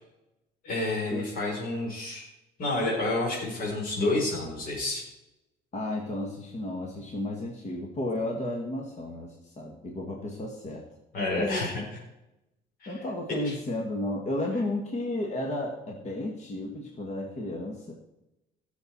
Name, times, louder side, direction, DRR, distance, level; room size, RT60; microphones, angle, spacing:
voice 1, 0.6-2.3 2.6-5.0 11.1-11.7 12.8-13.0 13.4-13.5, left 2 dB, 60° left, -4 dB, 4.5 m, -29 dB
voice 2, 5.7-10.8 11.4-11.7 12.9-17.9, left 1 dB, 40° left, 1 dB, 2.0 m, -33 dB
17.0 x 7.0 x 4.4 m, 0.91 s
cardioid pair, 110°, 17 cm